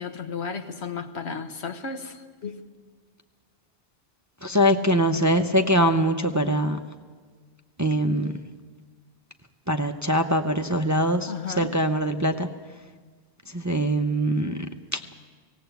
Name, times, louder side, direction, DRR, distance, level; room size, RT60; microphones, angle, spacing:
voice 1, 0.0-2.6 11.3-11.7, left 5 dB, 75° left, 7 dB, 1.4 m, -34 dB
voice 2, 4.4-6.8 7.8-8.3 9.7-12.5 13.5-14.7 14.9-15.0, equal, 20° right, 5 dB, 0.6 m, -23 dB
19.0 x 17.5 x 8.1 m, 1.5 s
omnidirectional pair, 1.1 m